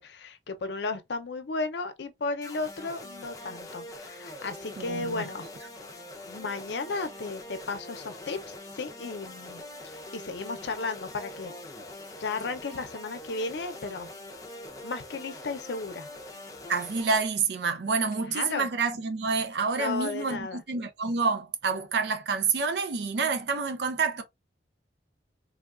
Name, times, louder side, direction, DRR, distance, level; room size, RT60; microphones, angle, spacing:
voice 1, 0.0-5.5 6.3-11.5 12.2-14.1 14.8-16.1 18.2-18.7 19.7-20.6, left 3 dB, 70° left, 0.6 m, -34 dB
sound 1, 2.4-17.2, left 1 dB, 20° left, 0.6 m, -43 dB
voice 2, 4.8-5.3 16.7-24.2, right 4 dB, 65° right, 0.5 m, -28 dB
3.4 x 2.3 x 2.3 m
head